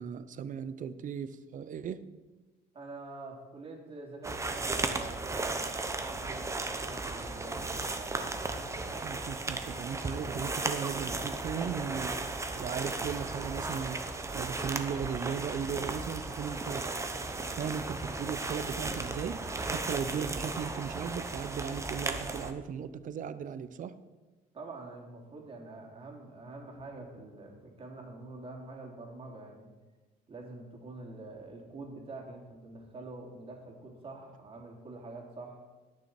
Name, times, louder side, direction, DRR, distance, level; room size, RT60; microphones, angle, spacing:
voice 1, 0.0-2.0 9.0-12.2 12.6-14.0 14.3-16.8 17.5-24.0, right 7 dB, 50° right, 14 dB, 0.7 m, -37 dB
voice 2, 2.7-8.2 24.5-29.7 30.3-35.6, right 2 dB, 35° right, 0 dB, 3.0 m, -46 dB
sound 1, 4.2-22.5, right 3 dB, 15° right, 1.0 m, -35 dB
18.5 x 6.4 x 4.3 m, 1.2 s
cardioid pair, 110°, 17 cm